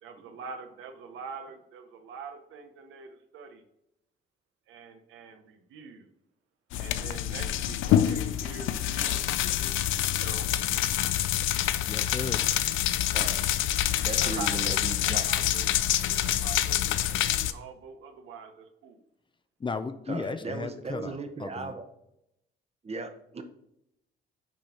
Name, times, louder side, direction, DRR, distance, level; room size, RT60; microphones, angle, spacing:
voice 1, 0.0-3.6 4.7-6.1 6.8-9.8 10.1-10.5 14.2-14.7 15.0-15.7 16.0-19.0, right 5 dB, 85° right, 0.9 m, -44 dB
sound 1, 6.7-17.5, left 12 dB, 85° left, 0.4 m, -27 dB
voice 2, 11.9-12.5 19.6-21.7, left 4 dB, 25° left, 0.5 m, -35 dB
voice 3, 13.1-13.5 14.0-15.3 20.1-21.8 22.8-23.4, right 3 dB, 30° right, 0.9 m, -37 dB
6.2 x 4.1 x 4.4 m
cardioid pair, 90°, 20 cm